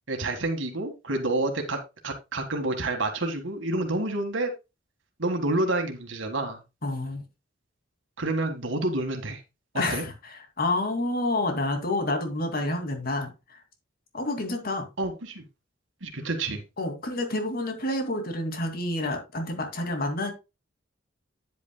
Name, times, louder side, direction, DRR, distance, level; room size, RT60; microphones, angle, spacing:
voice 1, 0.1-4.5 5.2-6.6 8.2-9.4 9.9-10.0 15.0-15.4 16.0-16.6, right 2 dB, 85° right, 1.8 m, -28 dB
voice 2, 6.8-7.2 9.7-13.6 14.1-14.9 16.8-20.3, left 2 dB, 50° left, 2.5 m, -29 dB
9.7 x 8.5 x 2.3 m
head